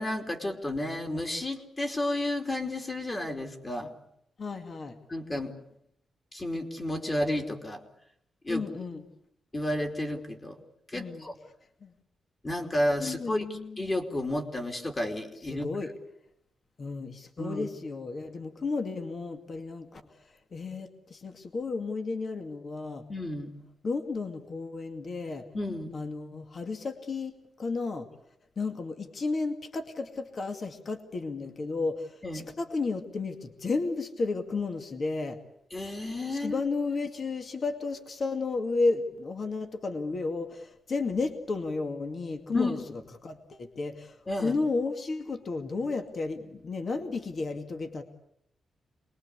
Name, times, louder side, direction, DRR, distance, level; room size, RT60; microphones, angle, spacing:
voice 1, 0.0-3.9 5.1-5.5 6.3-7.8 8.4-8.6 9.5-10.6 10.9-11.4 12.4-13.5 13.8-15.7 17.4-17.7 23.1-23.5 25.5-26.0 32.2-32.5 35.7-36.6 42.5-42.7 44.3-44.6, left 1 dB, 20° left, 3 dB, 3.1 m, -31 dB
voice 2, 4.4-5.0 8.5-9.0 10.9-11.3 11.8-11.9 13.0-13.8 15.5-15.9 16.8-20.0 20.5-23.0 23.8-25.4 25.9-28.1 28.6-35.4 36.3-42.8 43.2-48.0, left 3 dB, 35° left, 6 dB, 2.3 m, -33 dB
27.5 x 21.5 x 8.4 m, 0.74 s
wide cardioid pair, 165°, 0 cm